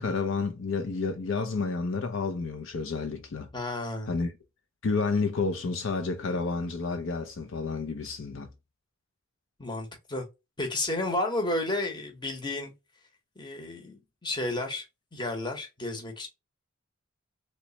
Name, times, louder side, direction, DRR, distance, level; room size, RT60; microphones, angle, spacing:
voice 1, 0.0-3.5 4.1-4.3 4.8-8.5, left 4 dB, 60° left, 0.5 m, -30 dB
voice 2, 3.5-4.1 9.6-10.3 10.6-12.7 13.4-14.8 15.1-16.3, left 2 dB, 20° left, 0.9 m, -32 dB
3.3 x 3.1 x 2.8 m
head